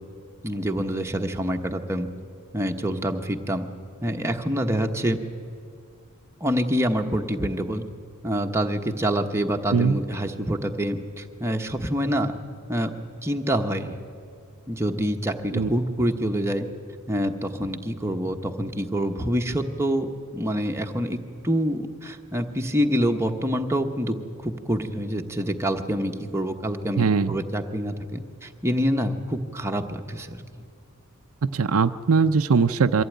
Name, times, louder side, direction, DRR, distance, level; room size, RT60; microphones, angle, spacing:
voice 1, 0.4-2.1 2.5-3.7 4.0-5.2 6.4-7.8 8.2-12.4 12.7-12.9 13.2-14.0 14.7-16.7 17.1-24.2 24.4-30.4, equal, 10° right, 3 dB, 1.1 m, -26 dB
voice 2, 27.0-27.4 31.4-33.0, right 5 dB, 70° right, 10 dB, 0.6 m, -21 dB
23.5 x 15.0 x 9.3 m, 2.4 s
head